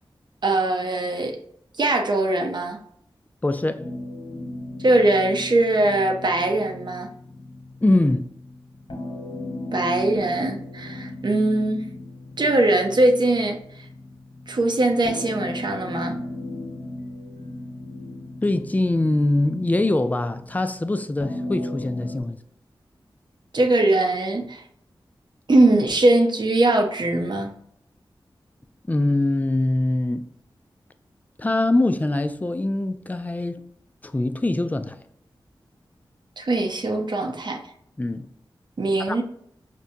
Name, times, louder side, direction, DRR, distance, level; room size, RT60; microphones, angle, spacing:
voice 1, 0.4-1.4 1.8-2.8 4.8-7.1 9.7-11.9 12.4-13.9 14.5-16.2 23.5-24.6 25.5-27.5 36.4-37.6 38.8-39.2, right 2 dB, 55° right, 0.7 m, -21 dB
voice 2, 3.4-3.9 7.8-8.3 18.4-22.4 28.9-30.2 31.4-33.6 34.0-35.0 38.0-38.3 39.1-39.2, left 2 dB, 20° left, 0.4 m, -23 dB
sound 1, 3.8-22.2, left 1 dB, 65° left, 1.1 m, -36 dB
5.0 x 2.2 x 2.6 m
cardioid pair, 50°, 9 cm